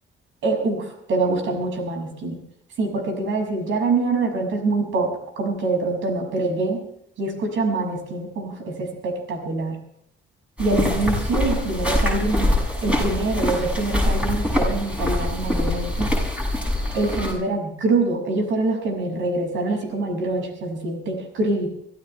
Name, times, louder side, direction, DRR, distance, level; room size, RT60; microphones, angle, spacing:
voice 1, 0.4-2.4 2.8-6.8 7.2-9.8 10.6-12.5 12.8-16.1 16.9-21.7, right 3 dB, 75° right, 3 dB, 6.4 m, -25 dB
sound 1, 10.6-17.3, left 1 dB, 5° right, 7.2 m, -23 dB
25.0 x 15.0 x 3.4 m, 0.71 s
cardioid pair, 90°, 20 cm